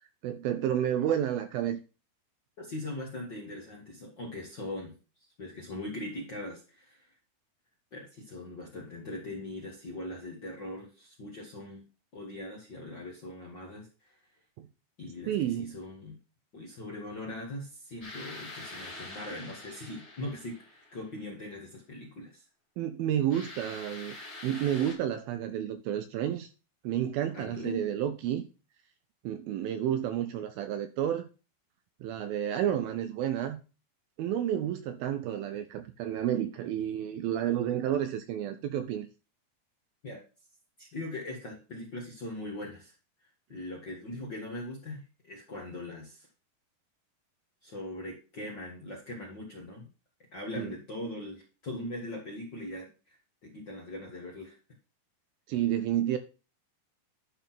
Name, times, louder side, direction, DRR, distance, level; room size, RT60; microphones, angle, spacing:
voice 1, 0.2-1.8 14.6-14.7 15.3-15.8 22.8-24.2 24.4-26.5 26.8-28.5 29.2-31.2 32.0-33.6 34.2-39.1 50.6-50.7 55.5-56.2, right 10 dB, 80° right, 2.2 m, -30 dB
voice 2, 2.6-4.9 5.4-7.1 7.9-11.8 12.1-14.2 15.0-16.2 16.5-22.4 27.3-27.8 40.0-40.2 40.8-42.9 43.5-46.3 47.6-49.9 50.3-54.6, left 1 dB, 45° left, 1.5 m, -41 dB
sound 1, 18.0-21.2 23.3-24.9, left 2 dB, 25° left, 1.4 m, -45 dB
11.0 x 4.2 x 5.8 m
omnidirectional pair, 4.7 m